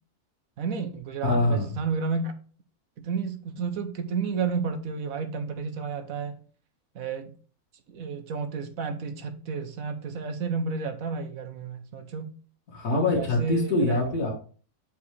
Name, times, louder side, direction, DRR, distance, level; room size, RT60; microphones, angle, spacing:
voice 1, 0.6-2.3 3.0-6.4 6.9-7.3 7.9-12.3 12.9-14.0, right 5 dB, 70° right, 1.2 m, -31 dB
voice 2, 1.2-1.8 12.7-14.3, left 2 dB, 75° left, 2.3 m, -24 dB
7.3 x 4.7 x 3.2 m
omnidirectional pair, 1.6 m